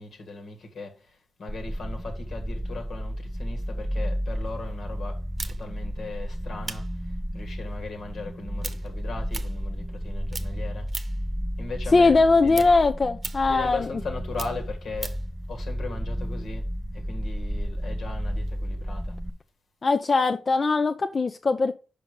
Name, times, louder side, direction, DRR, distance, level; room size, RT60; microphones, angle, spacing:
voice 1, 0.0-10.9 11.6-12.7 13.5-15.2 15.5-16.7 16.9-19.2, left 3 dB, 70° left, 1.7 m, -38 dB
sound 1, 1.5-19.3, equal, ahead, 0.6 m, -32 dB
sound 2, 5.4-10.0 10.3-11.3 11.7-15.3, right 3 dB, 45° right, 0.8 m, -39 dB
voice 2, 11.9-13.8 19.8-21.7, left 3 dB, 45° left, 0.5 m, -20 dB
5.3 x 5.2 x 6.6 m
supercardioid pair, 40°, 0 cm